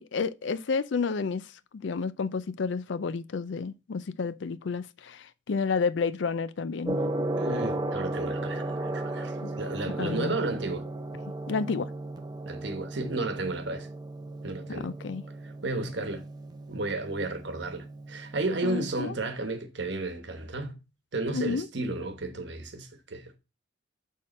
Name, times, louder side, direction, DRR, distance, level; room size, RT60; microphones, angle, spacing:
voice 1, 0.0-7.0 9.4-9.5 10.0-10.4 11.5-11.9 14.7-15.2 18.6-19.2 21.3-21.7, left 5 dB, 65° left, 0.4 m, -31 dB
Gong, 6.8-18.8, right 2 dB, 20° right, 0.6 m, -35 dB
voice 2, 7.4-10.9 12.4-13.9 14.4-14.9 15.4-16.2 16.7-20.8 21.1-23.3, right 2 dB, 60° right, 1.1 m, -33 dB
6.5 x 3.6 x 4.2 m
head